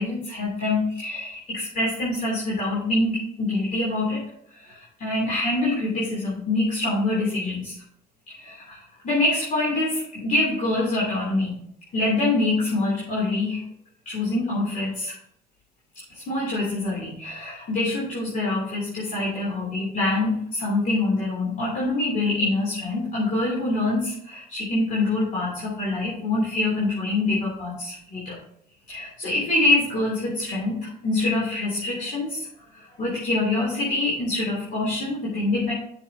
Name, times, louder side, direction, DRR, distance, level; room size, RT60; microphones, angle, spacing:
voice 1, 0.0-4.2 4.7-4.8 5.0-7.7 8.4-8.8 9.0-11.5 11.9-13.6 14.0-15.1 16.3-28.4 28.9-32.5 33.0-35.7, left 2 dB, 50° left, -5 dB, 3.3 m, -25 dB
10.5 x 6.6 x 2.9 m, 0.72 s
cardioid pair, 110°, 17 cm